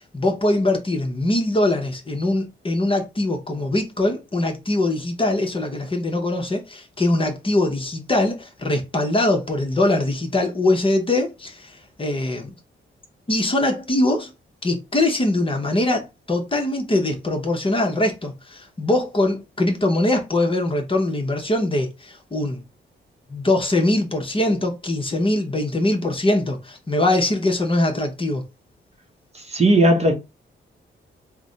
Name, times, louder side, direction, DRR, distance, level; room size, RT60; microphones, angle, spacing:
voice 1, 0.1-12.5 13.3-14.3 14.6-22.6 23.3-28.5, left 1 dB, 25° left, 0.9 m, -22 dB
voice 2, 29.5-30.1, right 1 dB, 30° right, 0.8 m, -16 dB
3.4 x 2.1 x 3.9 m
wide cardioid pair, 110°, 20 cm